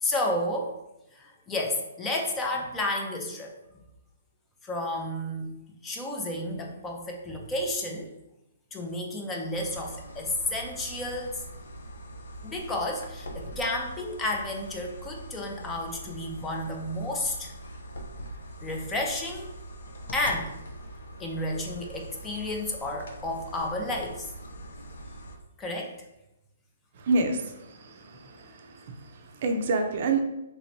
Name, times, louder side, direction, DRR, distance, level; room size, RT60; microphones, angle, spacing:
voice 1, 0.0-0.7 1.1-3.8 4.6-5.6 5.8-8.1 8.7-11.4 12.4-17.5 18.6-19.5 20.1-20.5 21.2-24.3 25.6-25.9, left 1 dB, 15° left, 1 dB, 0.5 m, -31 dB
sound 1, 9.5-25.4, right 1 dB, 80° left, 0.6 m, -43 dB
voice 2, 27.0-30.2, right 3 dB, 50° right, 5 dB, 0.4 m, -28 dB
3.3 x 2.9 x 2.6 m, 0.90 s
hypercardioid pair, 155°, 0 cm